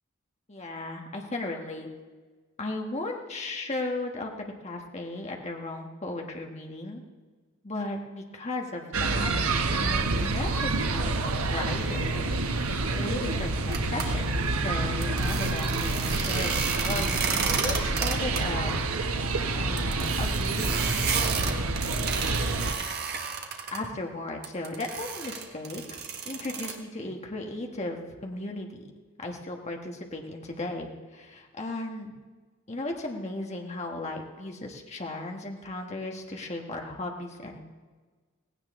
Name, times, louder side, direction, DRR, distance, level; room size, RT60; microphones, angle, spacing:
voice 1, 0.5-1.9 2.6-4.3 4.6-7.0 7.6-9.3 9.7-14.3 14.6-18.9 19.1-20.8 23.7-28.9 29.2-32.1 32.7-37.6, left 2 dB, 30° left, 1 dB, 1.4 m, -36 dB
sound 1, 8.9-22.7, right 3 dB, 90° right, 1.0 m, -28 dB
sound 2, 13.7-14.1 15.0-18.4 18.7-18.8 19.1-19.2 19.8-23.8 24.4-26.8, right 6 dB, 50° right, 1.4 m, -32 dB
17.5 x 16.5 x 3.7 m, 1.4 s
head